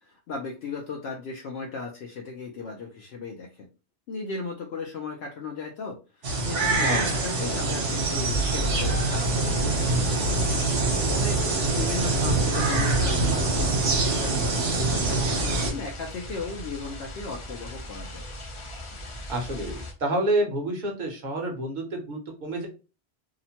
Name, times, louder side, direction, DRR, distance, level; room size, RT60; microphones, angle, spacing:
voice 1, 0.0-3.7 4.1-10.2 10.6-18.2, left 4 dB, 70° left, 0 dB, 0.8 m, -37 dB
sound 1, 6.2-15.7, right 2 dB, 65° right, 1.1 m, -24 dB
sound 2, 6.7-19.9, equal, 40° left, 0.4 m, -38 dB
voice 2, 6.8-7.1 19.3-22.7, right 1 dB, 45° right, 1 dB, 0.9 m, -28 dB
2.8 x 2.1 x 2.8 m, 0.33 s
omnidirectional pair, 1.2 m